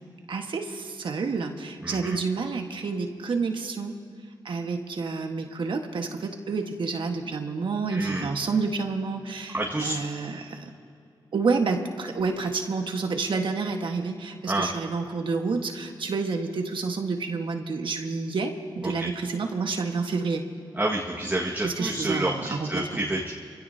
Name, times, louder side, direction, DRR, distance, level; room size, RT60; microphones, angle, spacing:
voice 1, 0.3-3.9 4.4-9.5 9.8-10.7 11.3-20.5 21.6-22.9, right 4 dB, 70° right, 4 dB, 1.5 m, -29 dB
voice 2, 1.8-2.2 7.9-8.3 9.5-10.0 14.5-14.7 18.8-19.1 20.7-23.3, right 1 dB, 20° right, -3 dB, 1.8 m, -28 dB
25.5 x 16.5 x 2.8 m, 2.4 s
cardioid pair, 55°, 9 cm